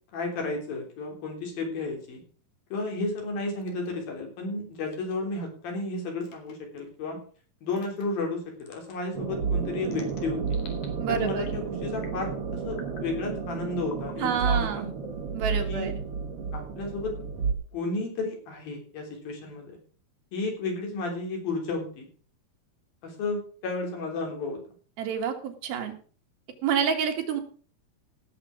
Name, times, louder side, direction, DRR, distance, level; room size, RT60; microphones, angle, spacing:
voice 1, 0.1-2.2 2.7-7.2 7.6-10.6 11.1-14.9 15.6-15.9 16.5-17.1 17.7-19.8 20.3-22.1 23.0-24.6, left 3 dB, 75° left, 1 dB, 5.3 m, -32 dB
sound 1, 3.6-3.9 4.9-5.2 6.2-6.5 7.7-8.1 8.6-9.0 9.8-10.9 11.2-11.6 12.0-12.4 12.7-13.1 13.8-14.2 15.0-15.9, left 4 dB, 55° left, 3.3 m, -49 dB
sound 2, 9.2-17.5, right 5 dB, 50° right, 2.1 m, -31 dB
voice 2, 11.0-11.6 14.2-14.9 15.3-16.0 25.0-25.9 26.6-27.4, right 7 dB, 85° right, 4 dB, 3.6 m, -28 dB
17.0 x 7.4 x 5.0 m, 0.41 s
omnidirectional pair, 4.1 m